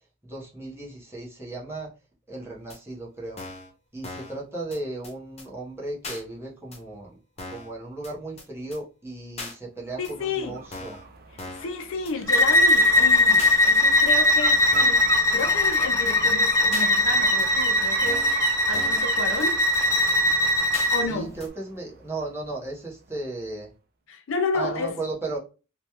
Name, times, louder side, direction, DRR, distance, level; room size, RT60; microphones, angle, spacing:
voice 1, 0.2-1.9 2.3-3.4 3.9-7.2 7.5-11.0 21.1-23.7 24.5-25.4, right 2 dB, 10° right, 0.9 m, -35 dB
sound 1, 2.7-2.8 3.4-3.7 4.0-4.4 4.7-4.8 5.0-5.1 5.4-5.5 6.0-6.2 6.7-6.8 7.4-7.7 8.0-8.1 8.4-8.5 8.7-8.8 9.4-9.5 10.0-10.1 10.7-11.0 11.4-11.7 12.0-12.1 12.4-12.5 12.7-12.8 13.4-13.6 14.1-14.2 14.7-15.0 15.4-15.5 15.7-15.8 16.1-16.2 16.7-16.9 17.4-17.5 18.1-18.4 18.7-19.1 19.4-19.5 19.7-19.8 20.1-20.2 20.7-20.9 21.4-21.5, left 2 dB, 30° left, 0.8 m, -38 dB
sound 2, 9.9-22.7 23.1-23.2, right 5 dB, 50° right, 0.5 m, -40 dB
voice 2, 10.0-10.6 11.3-19.6 20.9-21.4 24.1-25.0, left 4 dB, 70° left, 0.5 m, -31 dB
Bowed string instrument, 12.3-21.1, left 1 dB, 15° left, 0.3 m, -20 dB
3.0 x 2.2 x 2.8 m
head